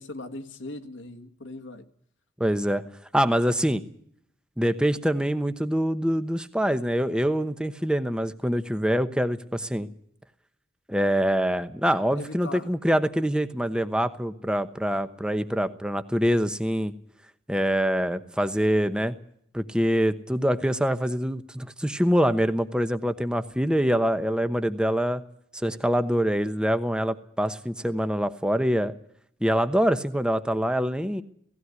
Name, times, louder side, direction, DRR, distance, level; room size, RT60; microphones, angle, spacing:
voice 1, 0.0-1.8 12.1-12.7, left 2 dB, 90° left, 5 dB, 1.8 m, -39 dB
voice 2, 2.4-2.9 3.1-3.8 4.6-9.9 10.9-16.9 17.5-19.1 19.5-25.2 25.5-28.9 29.4-31.2, equal, 5° right, 10 dB, 1.0 m, -25 dB
17.5 x 16.0 x 9.6 m, 0.67 s
head